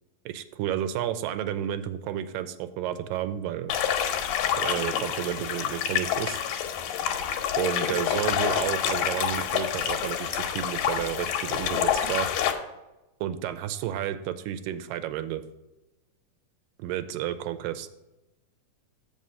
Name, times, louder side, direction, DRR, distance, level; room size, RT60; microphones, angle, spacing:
voice 1, 0.3-3.8 4.6-6.4 7.6-12.3 13.2-15.4 16.8-17.9, right 11 dB, 85° right, 11 dB, 2.2 m, -31 dB
sound 1, 3.7-12.5, left 9 dB, 85° left, 2.5 m, -27 dB
7.5 x 5.4 x 5.4 m, 0.98 s
omnidirectional pair, 3.9 m